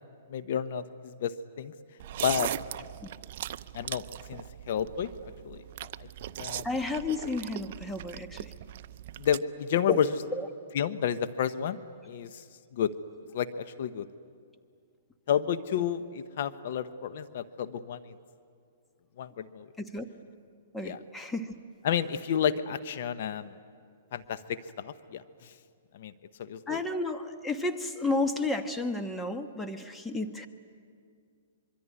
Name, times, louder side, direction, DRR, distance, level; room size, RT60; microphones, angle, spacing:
voice 1, 0.3-1.7 2.2-2.5 3.7-5.6 6.0-6.6 9.2-10.1 10.7-11.8 12.0-12.4 12.7-12.9 13.3-14.1 15.3-18.1 19.2-19.7 20.8-21.0 21.8-23.6 24.1-25.5 25.9-26.1 26.4-26.8, left 9 dB, 55° left, 12 dB, 1.0 m, -31 dB
sound 1, 2.0-9.4, right 12 dB, 50° right, 0.6 m, -39 dB
voice 2, 6.6-8.5 9.9-10.0 19.8-20.1 20.7-21.5 26.7-30.5, left 3 dB, 5° left, 6 dB, 1.2 m, -32 dB
25.5 x 23.5 x 9.8 m, 2.2 s
hypercardioid pair, 150°, 0 cm